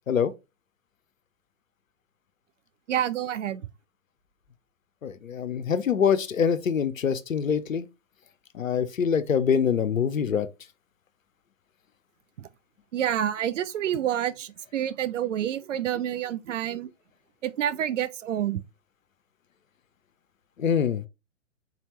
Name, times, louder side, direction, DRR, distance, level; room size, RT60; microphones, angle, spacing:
voice 1, 2.9-3.6 12.4-12.5 12.9-16.9 17.4-18.6, right 10 dB, 70° right, 0.5 m, -28 dB
voice 2, 5.0-7.9 8.5-10.5 20.6-21.1, left 7 dB, 90° left, 0.6 m, -24 dB
4.0 x 2.8 x 3.0 m
figure-of-eight pair, 115°, 39 cm